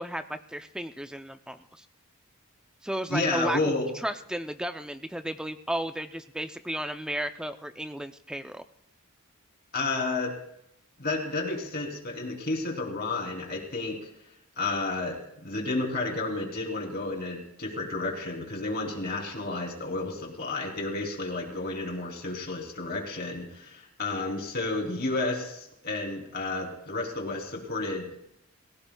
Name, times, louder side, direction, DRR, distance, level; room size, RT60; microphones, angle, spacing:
voice 1, 0.0-1.9 2.8-3.6 4.0-8.6, right 1 dB, 5° right, 8 dB, 0.4 m, -34 dB
voice 2, 3.1-3.9 9.7-10.3 11.0-14.1 14.6-28.2, left 2 dB, 45° left, 1 dB, 3.1 m, -31 dB
29.5 x 17.0 x 2.3 m, 0.78 s
head